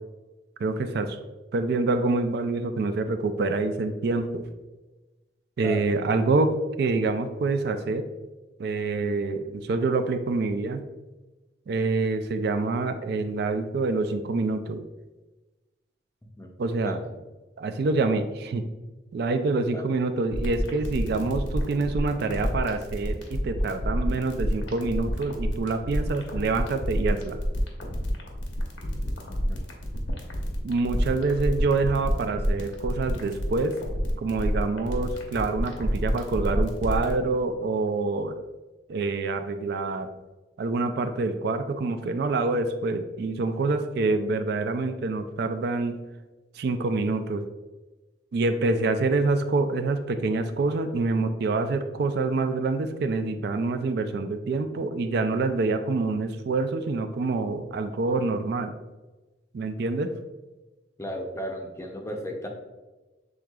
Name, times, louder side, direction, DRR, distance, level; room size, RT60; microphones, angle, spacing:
voice 1, 0.6-1.2 1.5-4.4 5.6-6.5 6.8-8.1 8.6-10.8 11.7-14.8 16.6-17.0 17.6-18.6 19.1-27.4 30.6-33.8 34.2-38.4 38.9-40.1 40.6-46.0 46.5-47.4 48.3-58.7 59.5-60.1, right 3 dB, 60° right, 8 dB, 0.3 m, -26 dB
sound 1, 20.3-37.1, equal, 85° left, 1.0 m, -29 dB
voice 2, 29.3-29.6 61.0-62.5, equal, 15° left, 2 dB, 0.6 m, -35 dB
6.3 x 3.6 x 2.3 m, 1.2 s
head